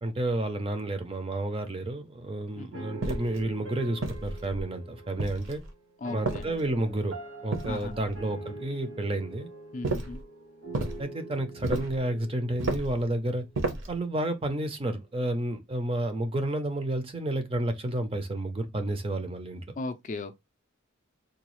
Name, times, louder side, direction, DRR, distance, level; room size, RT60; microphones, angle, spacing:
voice 1, 0.0-5.6 6.1-7.2 7.4-9.5 11.0-13.5 13.9-19.6, right 1 dB, 25° right, 0.5 m, -30 dB
voice 2, 2.5-2.9 6.0-6.5 7.7-7.9 9.7-10.2 19.8-20.4, left 3 dB, 35° left, 0.3 m, -37 dB
sound 1, 2.7-13.8, right 2 dB, 80° right, 1.4 m, -45 dB
sound 2, 3.0-3.4 4.0-4.7 5.2-5.7 6.2-6.9 7.5-8.2 9.8-10.2 10.7-11.0 11.6-12.0 12.6-13.0 13.5-14.0, right 2 dB, 60° right, 0.7 m, -32 dB
3.8 x 2.3 x 3.0 m
head